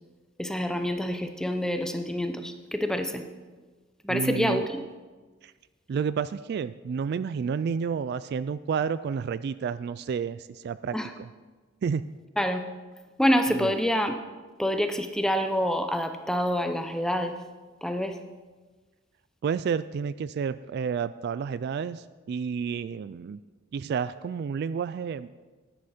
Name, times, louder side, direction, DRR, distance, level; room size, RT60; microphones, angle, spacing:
voice 1, 0.4-3.2 4.0-4.8 10.9-11.1 12.4-12.6 13.2-14.1 14.6-17.3 17.8-18.2, equal, 5° left, 7 dB, 0.7 m, -27 dB
voice 2, 4.1-4.7 5.4-5.5 5.9-11.3 11.8-12.0 13.6-13.7 19.4-23.4 23.7-25.3, right 6 dB, 55° right, 16 dB, 0.3 m, -30 dB
13.0 x 9.9 x 4.3 m, 1.3 s
head